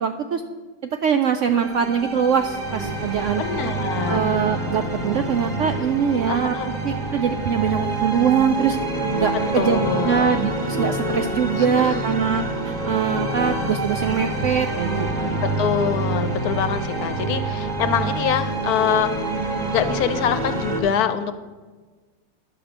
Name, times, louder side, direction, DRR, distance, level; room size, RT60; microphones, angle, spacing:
voice 1, 0.0-0.4 1.0-3.4 4.1-6.6 6.8-8.8 9.2-9.8 10.1-15.4, right 7 dB, 75° right, 7 dB, 0.7 m, -22 dB
sound 1, 1.5-20.8, right 2 dB, 25° right, 1.4 m, -27 dB
voice 2, 3.4-4.3 6.2-6.7 9.6-10.3 11.6-12.1 15.4-19.2 19.6-21.4, left 8 dB, 70° left, 11 dB, 1.0 m, -24 dB
11.0 x 5.1 x 7.2 m, 1.4 s
omnidirectional pair, 1.8 m